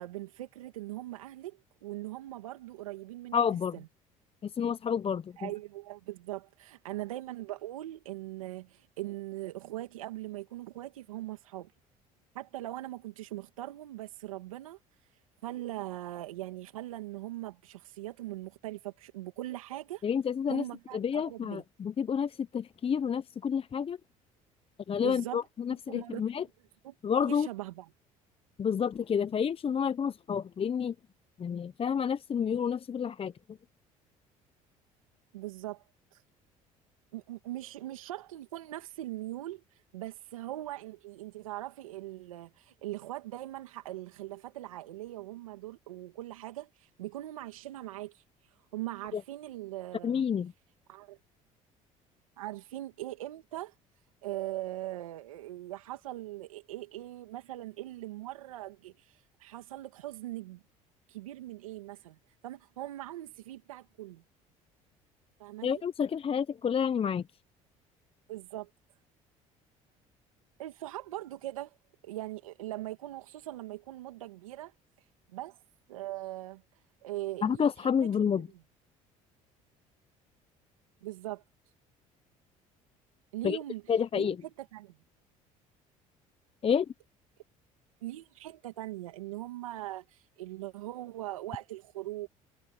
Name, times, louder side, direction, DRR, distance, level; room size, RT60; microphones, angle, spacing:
voice 1, 0.0-3.4 3.7-3.9 5.4-11.7 12.3-14.8 15.4-20.0 20.5-21.6 25.0-25.4 25.7-26.2 26.8-27.0 27.3-27.9 35.3-35.8 36.1-36.2 37.1-48.2 48.7-50.3 50.9-51.2 52.4-53.7 54.2-60.6 61.1-62.2 62.4-64.2 65.4-65.8 68.3-68.7 70.6-71.8 72.0-74.7 75.3-75.6 75.9-76.6 77.0-78.6 81.0-81.4 83.3-85.0 88.0-92.3, right 15 dB, 90° right, 2.1 m, -41 dB
voice 2, 3.3-3.7 4.4-5.5 20.0-20.6 20.9-24.0 24.9-26.4 27.0-27.5 28.6-30.9 31.4-33.3 49.1-49.2 50.0-50.5 65.6-67.2 77.4-78.5 83.4-83.6 83.9-84.4 86.6-86.9, left 7 dB, 35° left, 0.7 m, -29 dB
hypercardioid pair, 65°, 17 cm